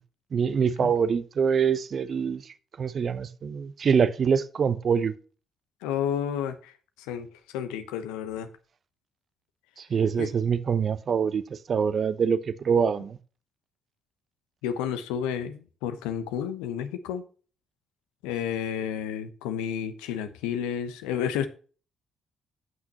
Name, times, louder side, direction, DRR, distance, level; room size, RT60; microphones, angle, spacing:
voice 1, 0.3-2.4 2.8-5.1 9.9-11.4 11.7-13.2, right 6 dB, 50° right, 0.9 m, -24 dB
voice 2, 5.8-6.7 7.1-7.3 7.5-8.5 10.2-10.3 14.6-17.2 18.2-21.5, left 8 dB, 80° left, 1.0 m, -31 dB
15.5 x 6.0 x 3.0 m
hypercardioid pair, 50°, 0 cm